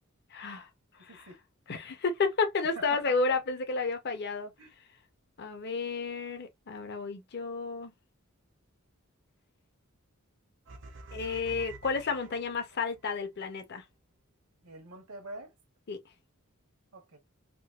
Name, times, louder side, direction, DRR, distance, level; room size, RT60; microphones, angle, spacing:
voice 1, 0.3-0.7 1.1-1.3 1.7-4.5 5.4-7.9 11.1-13.8 15.9-16.0, left 4 dB, 50° left, 0.7 m, -31 dB
voice 2, 1.1-1.4 2.7-3.2 4.6-4.7 14.6-15.5 16.9-17.2, right 2 dB, 80° right, 1.0 m, -45 dB
sound 1, 10.7-13.1, right 3 dB, 60° right, 0.7 m, -48 dB
3.7 x 2.2 x 2.3 m
head